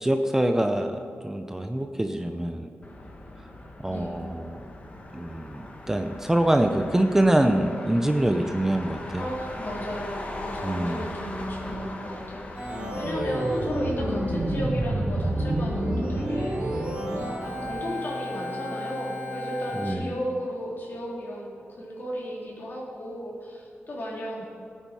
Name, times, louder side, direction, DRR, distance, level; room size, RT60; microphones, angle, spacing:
voice 1, 0.0-2.7 3.8-4.6 5.1-9.3 10.6-11.0 19.8-20.1, right 1 dB, 10° right, 6 dB, 0.6 m, -25 dB
Motor vehicle (road), 2.8-17.8, left 1 dB, 35° left, 1.5 m, -41 dB
voice 2, 3.8-4.2 9.2-24.4, equal, 55° left, -3 dB, 3.5 m, -35 dB
Organ, 12.6-19.9, right 1 dB, 30° right, 3.0 m, -29 dB
18.5 x 9.1 x 4.8 m, 2.5 s
wide cardioid pair, 130°, 4 cm